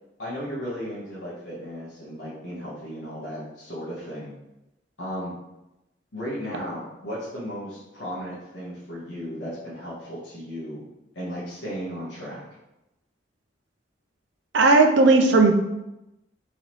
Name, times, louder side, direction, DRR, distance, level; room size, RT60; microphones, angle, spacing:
voice 1, 0.2-4.3 5.0-5.3 6.1-10.8 11.1-12.4, equal, 75° left, -9 dB, 1.4 m, -35 dB
voice 2, 14.5-15.5, right 3 dB, 80° right, 4 dB, 0.6 m, -16 dB
4.0 x 3.2 x 4.0 m, 0.94 s
head